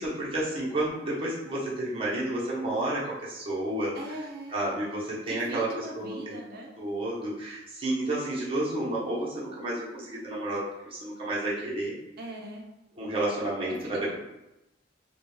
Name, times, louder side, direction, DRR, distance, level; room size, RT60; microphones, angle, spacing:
voice 1, 0.0-3.9 4.5-6.4 6.8-11.9 13.0-14.2, right 1 dB, 30° right, -7 dB, 0.8 m, -31 dB
voice 2, 3.9-4.8 5.2-6.7 12.2-12.6 14.1-14.2, right 1 dB, 55° right, 0 dB, 0.5 m, -40 dB
2.3 x 2.2 x 3.1 m, 0.91 s
head